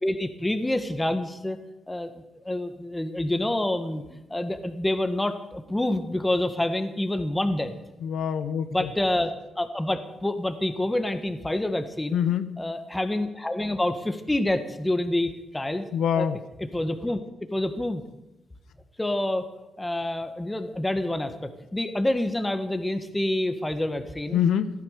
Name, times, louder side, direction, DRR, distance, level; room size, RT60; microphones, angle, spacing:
voice 1, 0.0-1.6 1.9-2.1 2.4-7.7 8.7-12.2 12.6-15.8 16.1-16.3 16.6-17.2 17.5-18.0 19.0-19.5 19.8-21.3 21.7-24.4, left 1 dB, 10° left, 8 dB, 1.5 m, -27 dB
voice 2, 8.0-8.9 12.1-12.6 15.9-16.4 24.3-24.7, left 8 dB, 80° left, 11 dB, 0.8 m, -25 dB
15.0 x 12.5 x 6.7 m, 0.96 s
cardioid pair, 100°, 0 cm